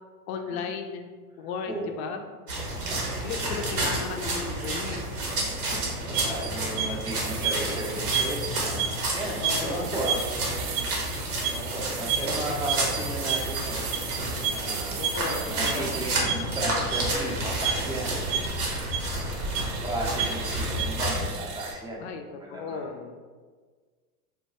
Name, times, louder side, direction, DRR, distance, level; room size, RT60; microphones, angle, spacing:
voice 1, 0.3-1.1 1.4-2.3 3.2-5.1 5.4-6.0 9.4-10.0 15.0-16.1 22.0-22.2 22.5-23.2, left 5 dB, 50° left, 5 dB, 0.5 m, -35 dB
sound 1, 2.5-21.3, right 1 dB, 90° right, 1.1 m, -30 dB
voice 2, 2.7-3.0 6.1-10.9 11.5-13.9 14.5-15.0 15.5-18.2 19.1-22.0 22.4-22.8, right 1 dB, 10° right, -2 dB, 0.5 m, -35 dB
sound 2, 5.8-21.7, right 7 dB, 65° right, 0.7 m, -33 dB
3.7 x 2.2 x 2.8 m, 1.5 s
hypercardioid pair, 100°, 45 cm